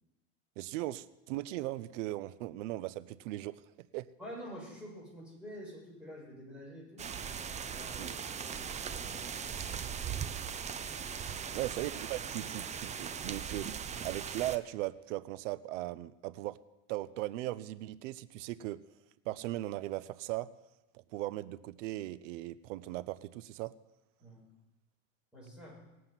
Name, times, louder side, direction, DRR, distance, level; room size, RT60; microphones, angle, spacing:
voice 1, 0.6-3.6 3.9-4.1 8.0-8.1 11.5-16.6 16.9-18.8 19.3-20.5 20.9-23.8, right 16 dB, 80° right, 18 dB, 0.6 m, -38 dB
voice 2, 4.2-7.1 7.7-9.3 9.5-10.2 11.3-11.6 24.2-24.4 25.3-25.8, equal, 5° right, -4 dB, 6.4 m, -49 dB
sound 1, 7.0-14.6, right 7 dB, 20° right, 0.6 m, -39 dB
19.5 x 7.6 x 5.8 m, 1.1 s
supercardioid pair, 125°, 36 cm